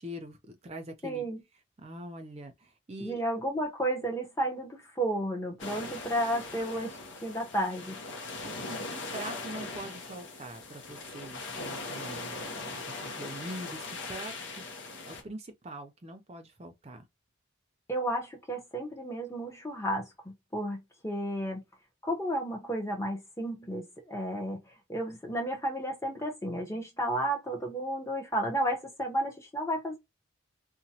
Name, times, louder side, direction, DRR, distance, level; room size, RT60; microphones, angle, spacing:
voice 1, 0.0-1.3 1.8-3.2 8.4-14.7 15.0-17.0, right 1 dB, 30° right, 0.5 m, -43 dB
voice 2, 1.0-1.4 3.0-8.0 17.9-21.6 22.0-24.6 24.9-30.0, right 1 dB, 15° left, 0.8 m, -32 dB
sound 1, 5.6-15.2, left 3 dB, 65° left, 0.7 m, -40 dB
2.9 x 2.1 x 2.8 m
head